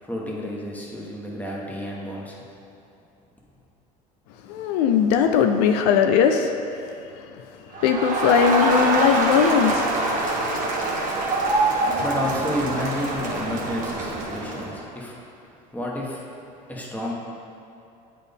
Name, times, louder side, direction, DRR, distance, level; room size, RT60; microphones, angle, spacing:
voice 1, 0.0-2.4 12.0-15.2 15.7-16.3 16.7-17.1, left 1 dB, 5° left, -3 dB, 1.2 m, -30 dB
voice 2, 4.5-6.5 7.8-9.9, left 7 dB, 75° left, 5 dB, 0.4 m, -19 dB
Crowd, 7.7-14.8, right 2 dB, 40° right, 1.2 m, -24 dB
8.0 x 4.2 x 3.5 m, 2.6 s
supercardioid pair, 90°, 21 cm